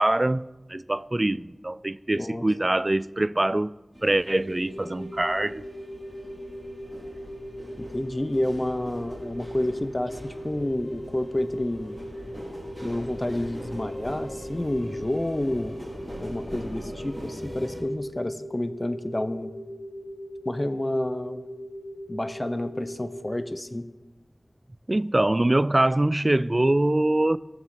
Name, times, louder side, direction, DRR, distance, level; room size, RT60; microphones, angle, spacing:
voice 1, 0.0-5.7 24.9-27.4, right 1 dB, 40° right, 0.3 m, -24 dB
sound 1, 3.9-17.8, equal, 20° right, 3.5 m, -42 dB
sound 2, 4.3-23.4, equal, 65° left, 2.6 m, -40 dB
voice 2, 7.8-12.0 12.8-15.7 16.2-19.5 20.5-21.4 22.1-23.9, left 1 dB, 30° left, 0.7 m, -29 dB
20.5 x 7.3 x 4.3 m
wide cardioid pair, 55°, 0 cm